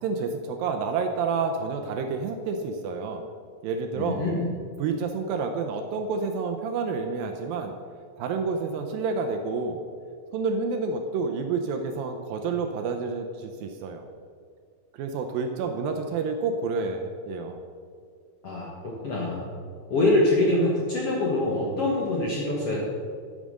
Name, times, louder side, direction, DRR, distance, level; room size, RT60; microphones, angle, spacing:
voice 1, 0.0-3.3 3.6-4.2 4.8-7.7 8.2-9.8 10.3-14.1 14.9-17.6, right 4 dB, 75° right, 5 dB, 2.2 m, -29 dB
voice 2, 3.9-4.5 18.4-19.5 19.9-22.8, left 2 dB, 60° left, -3 dB, 1.6 m, -24 dB
9.5 x 9.0 x 6.3 m, 2.2 s
omnidirectional pair, 4.6 m